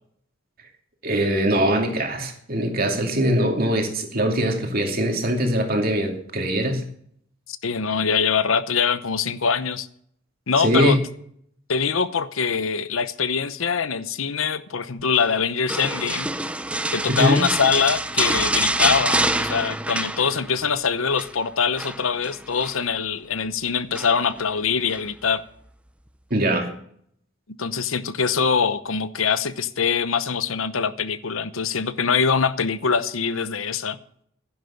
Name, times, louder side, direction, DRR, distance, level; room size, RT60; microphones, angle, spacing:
voice 1, 1.0-6.9 10.6-11.0 17.1-17.4 26.3-26.7, equal, 50° right, 2.6 m, -22 dB
voice 2, 7.6-9.9 10.5-11.0 11.7-16.3 16.9-25.4 27.6-34.0, left 6 dB, 90° left, 0.9 m, -23 dB
sound 1, 15.7-20.7 20.9-21.3 21.8-22.8 23.9-24.4 24.9-25.0, right 2 dB, 5° right, 0.5 m, -26 dB
11.5 x 10.5 x 7.1 m
head